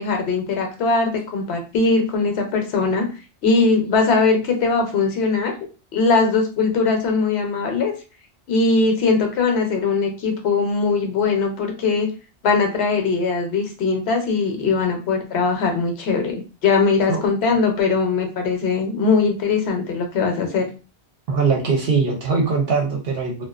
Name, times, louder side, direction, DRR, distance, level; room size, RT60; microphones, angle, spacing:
voice 1, 0.0-3.1 3.4-5.5 5.9-7.9 8.5-12.1 12.4-20.7, left 4 dB, 75° left, 3 dB, 0.9 m, -20 dB
voice 2, 21.3-23.4, right 4 dB, 65° right, -1 dB, 0.8 m, -21 dB
2.4 x 2.2 x 2.3 m, 0.33 s
omnidirectional pair, 1.1 m